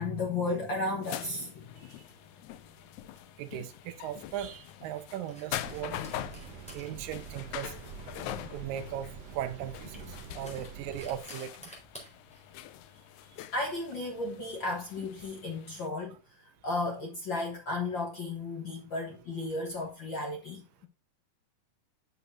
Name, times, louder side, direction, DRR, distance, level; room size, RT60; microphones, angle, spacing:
voice 1, 0.0-2.0 10.4-10.5 13.5-20.9, left 2 dB, 55° left, 1.4 m, -34 dB
sound 1, 1.0-15.9, left 13 dB, 85° left, 1.8 m, -44 dB
sound 2, 2.6-15.2, equal, ahead, 3.7 m, -55 dB
voice 2, 3.4-6.0 6.7-7.7 8.5-11.7, right 11 dB, 80° right, 2.5 m, -38 dB
sound 3, 5.5-11.2, right 6 dB, 65° right, 1.8 m, -46 dB
9.7 x 6.8 x 2.6 m
omnidirectional pair, 4.0 m